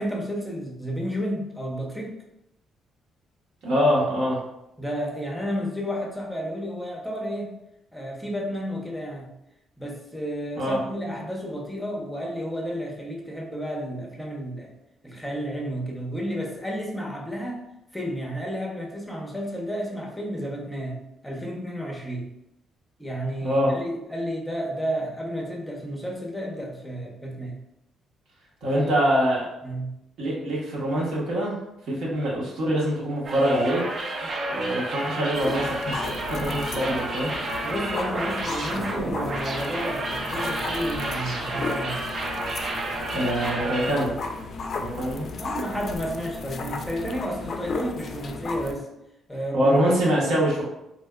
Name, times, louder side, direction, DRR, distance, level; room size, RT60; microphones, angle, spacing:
voice 1, 0.0-2.2 4.8-7.6 7.9-9.3 9.8-14.7 15.0-22.3 23.0-27.6 28.7-29.1 29.6-29.9 34.2-34.4 37.6-42.0 45.4-48.9 49.3-50.6, equal, 5° left, -1 dB, 0.7 m, -32 dB
voice 2, 3.6-4.4 10.6-10.8 23.4-23.7 28.6-29.5 30.2-31.6 31.9-33.8 34.5-37.3 43.1-44.1 44.8-45.3 49.5-50.6, equal, 80° right, -5 dB, 1.1 m, -24 dB
sound 1, 33.2-43.9, right 2 dB, 55° right, 0.6 m, -31 dB
sound 2, 35.3-48.7, left 4 dB, 55° left, 0.3 m, -35 dB
3.4 x 2.6 x 2.2 m, 0.86 s
cardioid pair, 90°, 0 cm